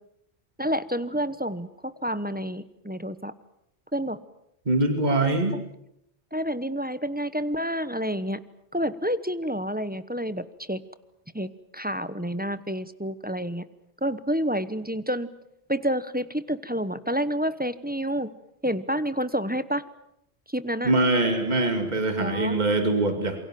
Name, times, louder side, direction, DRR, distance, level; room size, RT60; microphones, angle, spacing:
voice 1, 0.6-3.3 3.9-4.2 5.2-5.6 6.3-8.4 8.7-10.8 11.3-13.7 14.0-15.3 15.7-18.3 18.6-19.8 20.5-20.9 22.2-22.6, equal, 10° right, 13 dB, 0.9 m, -29 dB
voice 2, 4.7-5.6 20.8-23.4, right 2 dB, 40° right, 6 dB, 2.6 m, -23 dB
27.5 x 23.5 x 7.7 m, 0.78 s
omnidirectional pair, 1.1 m